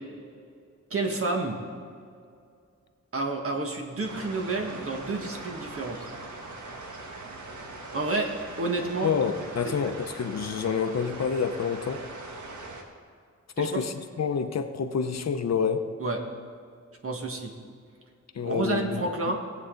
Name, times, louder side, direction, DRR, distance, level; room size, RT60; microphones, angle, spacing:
voice 1, 0.9-1.6 3.1-6.0 7.9-8.3 8.6-9.1 9.6-9.9 13.6-13.8 16.0-16.2 17.0-17.5 18.4-19.4, right 2 dB, 50° right, 1.5 m, -29 dB
sound 1, 4.0-12.8, right 2 dB, 80° right, 1.5 m, -41 dB
voice 2, 9.0-12.1 13.6-15.9 18.3-19.0, left 6 dB, 60° left, 0.8 m, -28 dB
18.0 x 8.2 x 3.9 m
wide cardioid pair, 140°, 29 cm